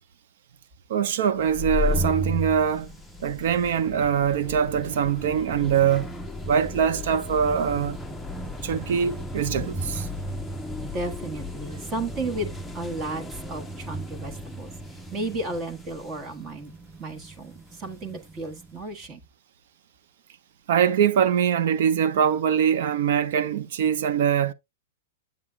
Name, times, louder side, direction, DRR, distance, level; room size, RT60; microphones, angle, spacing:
voice 1, 0.9-2.9 3.2-6.1 6.4-8.0 8.6-10.1 20.7-24.5, right 8 dB, 60° right, 1.0 m, -23 dB
sound 1, 1.4-18.8, left 1 dB, ahead, 0.7 m, -34 dB
voice 2, 10.8-14.7 15.1-16.7 17.0-19.2, right 2 dB, 25° right, 1.4 m, -33 dB
7.6 x 7.4 x 2.3 m
hypercardioid pair, 150°, 0 cm